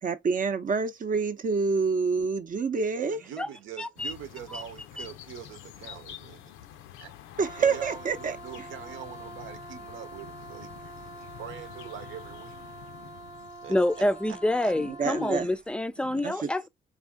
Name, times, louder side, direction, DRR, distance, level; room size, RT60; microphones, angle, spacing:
voice 1, 0.0-3.2 7.4-8.4 14.8-15.5 16.2-16.5, right 5 dB, 40° right, 0.7 m, -27 dB
voice 2, 3.1-6.5 7.0-7.1 7.6-12.6 13.6-14.0 14.3-14.7, right 9 dB, 80° right, 0.9 m, -43 dB
voice 3, 3.8-4.1 4.5-4.6 5.0-5.1 13.7-16.7, left 1 dB, 5° left, 0.4 m, -27 dB
Residential Street Ambience Quiet Tube Train Pass Birds, 4.0-14.3, left 11 dB, 90° left, 0.6 m, -48 dB
Wind instrument woodwind instrument, 7.3-15.5, right 2 dB, 20° right, 1.1 m, -45 dB
4.1 x 2.7 x 3.4 m
cardioid pair, 90°, 20 cm